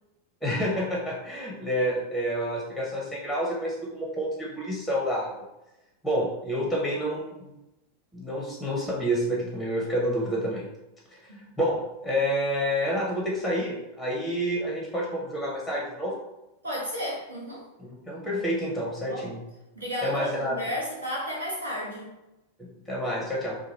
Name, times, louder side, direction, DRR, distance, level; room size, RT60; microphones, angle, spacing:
voice 1, 0.4-5.4 6.0-7.5 8.1-10.6 11.1-16.1 17.8-19.4 20.0-20.6 22.6-23.6, equal, ahead, -3 dB, 0.7 m, -29 dB
voice 2, 16.6-17.6 19.0-19.3 19.7-22.1, equal, 75° right, -4 dB, 1.0 m, -32 dB
2.8 x 2.3 x 2.9 m, 0.97 s
figure-of-eight pair, 90°, 0 cm